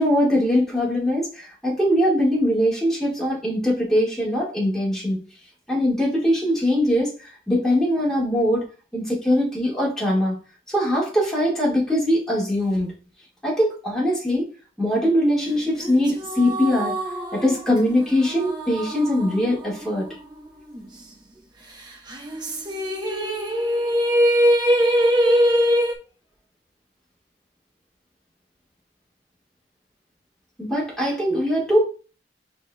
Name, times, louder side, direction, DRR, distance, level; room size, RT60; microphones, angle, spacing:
voice 1, 0.0-5.2 5.7-8.6 8.9-10.4 10.7-12.9 13.4-14.5 14.8-17.0 17.3-20.1 30.6-31.8, equal, 5° left, -5 dB, 1.8 m, -21 dB
sound 1, 15.8-20.4 20.7-20.8 22.1-26.0, equal, 25° right, 0.9 m, -23 dB
7.6 x 2.9 x 2.3 m, 0.35 s
head